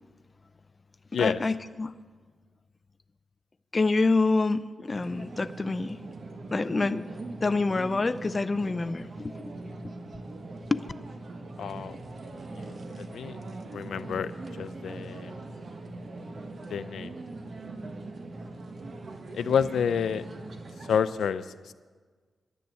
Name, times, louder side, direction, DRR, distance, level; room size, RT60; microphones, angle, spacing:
voice 1, 1.1-1.9 3.7-6.0 6.5-7.1 7.4-9.4 10.7-10.8, left 3 dB, 30° left, 13 dB, 0.4 m, -27 dB
sound 1, 4.9-21.0, right 2 dB, 45° right, 1.1 m, -41 dB
voice 2, 11.6-12.0 13.0-13.4 13.7-14.3 14.6-15.3 16.7-17.1 19.3-20.2 20.9-21.7, left 7 dB, 90° left, 14 dB, 0.5 m, -29 dB
10.5 x 9.8 x 7.6 m, 1.5 s
wide cardioid pair, 120°, 0 cm